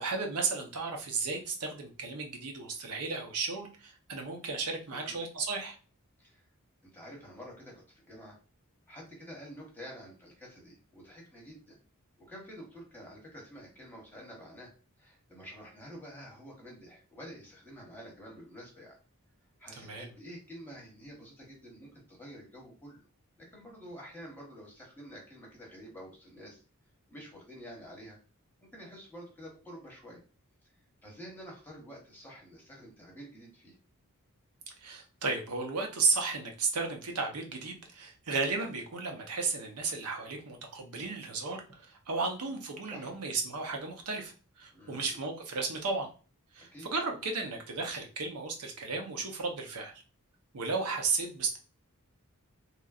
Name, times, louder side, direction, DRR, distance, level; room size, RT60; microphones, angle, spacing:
voice 1, 0.0-5.7 19.7-20.1 34.8-44.3 44.6-46.1 46.5-49.9 50.5-51.6, right 4 dB, 85° right, 2 dB, 0.7 m, -34 dB
voice 2, 6.8-8.4 8.9-11.8 12.2-14.7 15.0-19.0 19.6-23.1 23.4-26.6 27.1-28.2 28.6-30.2 31.0-33.8 42.9-43.2 44.7-45.2 46.6-46.9, equal, 10° left, -2 dB, 0.9 m, -49 dB
3.0 x 2.5 x 2.4 m, 0.36 s
head